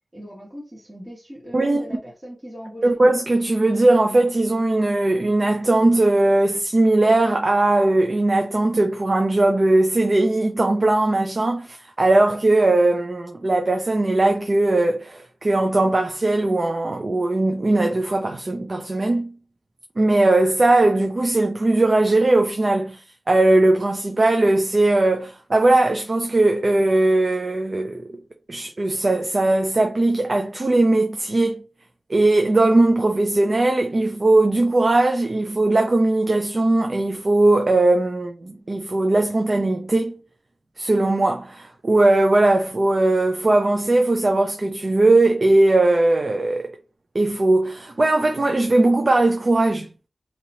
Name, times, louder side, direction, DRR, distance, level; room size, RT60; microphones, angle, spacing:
voice 1, 0.1-3.0, equal, 25° right, 1.5 m, -39 dB
voice 2, 2.8-19.3 20.0-23.0 23.3-28.1 28.5-31.6 32.1-40.2 40.8-46.7 47.1-49.9, right 2 dB, 45° right, 0.6 m, -19 dB
3.0 x 2.9 x 4.0 m
wide cardioid pair, 80°, 0 cm